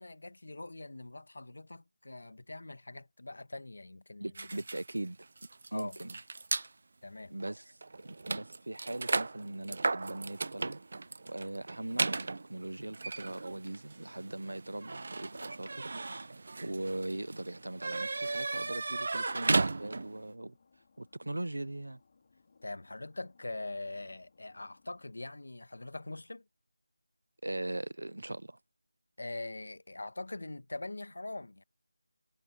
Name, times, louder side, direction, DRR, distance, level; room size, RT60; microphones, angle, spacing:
voice 1, 0.0-4.6 5.7-6.0 7.0-7.3 22.6-26.4 29.2-31.6, left 2 dB, 60° left, 1.5 m, -43 dB
voice 2, 4.2-5.2 5.7-6.2 7.3-7.7 8.0-10.8 11.2-16.3 16.6-20.5 21.0-22.0 27.4-28.6, right 1 dB, 85° right, 0.7 m, -40 dB
sound 1, 4.4-6.7 7.4-7.5 7.8-20.3, right 3 dB, 40° right, 0.4 m, -35 dB
sound 2, 15.0-25.2, left 4 dB, 30° left, 3.3 m, -68 dB
figure-of-eight pair, 175°, 0 cm